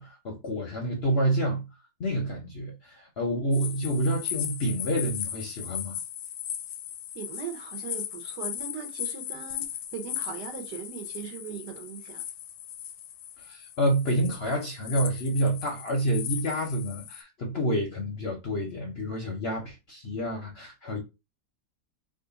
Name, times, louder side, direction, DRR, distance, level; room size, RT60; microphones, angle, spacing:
voice 1, 0.0-1.6 2.0-6.0 13.4-21.0, right 1 dB, 55° left, 0.7 m, -28 dB
sound 1, 3.5-17.2, left 10 dB, 85° left, 1.2 m, -37 dB
voice 2, 7.1-12.2, right 8 dB, 75° right, 1.4 m, -39 dB
3.2 x 2.5 x 3.9 m
omnidirectional pair, 1.8 m